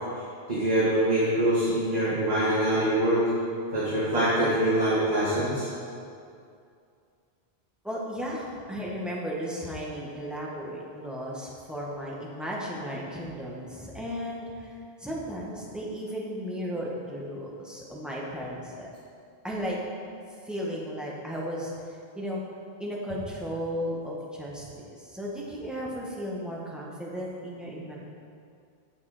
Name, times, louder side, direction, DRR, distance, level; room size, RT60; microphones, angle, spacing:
voice 1, 0.5-3.2 3.7-5.7, right 1 dB, 40° right, -10 dB, 2.0 m, -24 dB
voice 2, 7.8-18.9 19.4-19.8 20.4-22.4 22.8-27.9, equal, ahead, -5 dB, 1.5 m, -35 dB
8.9 x 6.8 x 5.0 m, 2.4 s
omnidirectional pair, 1.0 m